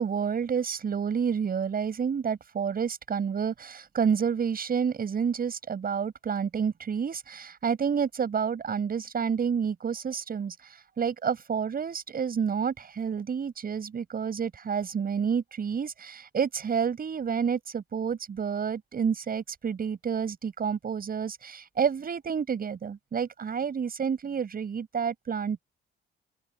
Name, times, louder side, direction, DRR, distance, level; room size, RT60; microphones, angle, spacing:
voice 1, 0.0-25.6, right 7 dB, 50° right, 7.1 m, -29 dB
open air
cardioid pair, 90°, 20 cm